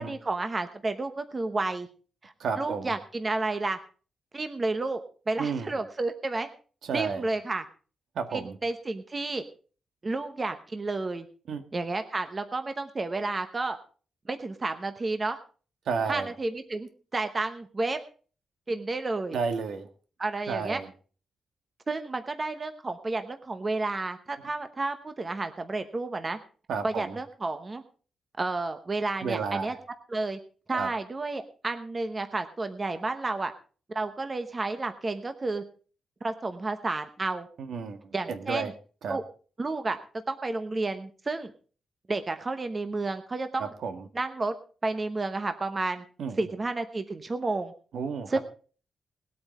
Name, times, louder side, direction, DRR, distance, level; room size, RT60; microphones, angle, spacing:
voice 1, 0.0-1.9 2.2-3.8 4.3-5.0 5.3-6.5 6.9-7.6 8.3-9.4 10.0-11.3 11.7-13.8 14.3-15.4 16.1-18.0 18.7-19.4 20.2-20.8 21.9-26.4 26.8-27.8 28.4-29.7 30.1-30.4 30.7-33.5 33.9-35.6 36.2-37.5 38.1-38.7 39.1-39.2 39.6-40.0 40.3-41.5 42.1-43.6 44.1-44.5 44.8-46.0 46.4-47.7 48.3-48.4, right 3 dB, 25° right, 8 dB, 0.9 m, -31 dB
voice 2, 2.4-2.9 5.4-5.7 6.8-7.3 8.1-8.6 11.5-11.6 15.8-16.3 19.3-19.9 20.5-20.9 26.7-27.1 29.2-29.8 30.7-30.9 37.6-38.7 39.0-39.2 43.6-44.1 46.2-46.4 47.9-48.4, right 5 dB, 70° right, 7 dB, 1.6 m, -32 dB
20.0 x 8.6 x 4.2 m, 0.39 s
wide cardioid pair, 165°, 0 cm